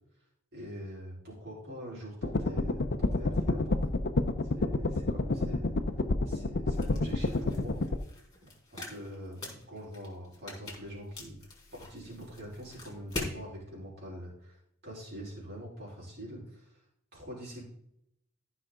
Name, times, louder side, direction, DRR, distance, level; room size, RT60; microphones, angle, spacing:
voice 1, 0.5-3.8 4.6-5.8 6.3-7.8 8.4-11.4 11.8-14.6 14.8-16.6 17.1-17.6, equal, 50° right, -5 dB, 4.5 m, -44 dB
sound 1, 2.2-8.0, left 2 dB, 50° left, 0.7 m, -29 dB
sound 2, 6.7-13.4, left 2 dB, 20° left, 3.9 m, -44 dB
15.0 x 5.7 x 3.8 m, 0.74 s
head